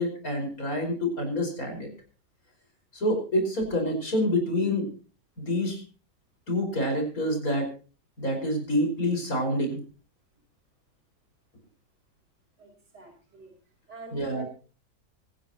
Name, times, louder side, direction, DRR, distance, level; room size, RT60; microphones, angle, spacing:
voice 1, 0.0-1.9 2.9-4.9 5.4-5.8 6.5-7.7 8.2-9.8 14.1-14.4, left 1 dB, 50° left, 3 dB, 5.7 m, -27 dB
voice 2, 12.6-13.5 13.9-14.4, right 3 dB, 65° right, 1 dB, 6.7 m, -45 dB
24.5 x 11.0 x 2.9 m, 0.37 s
omnidirectional pair, 1.9 m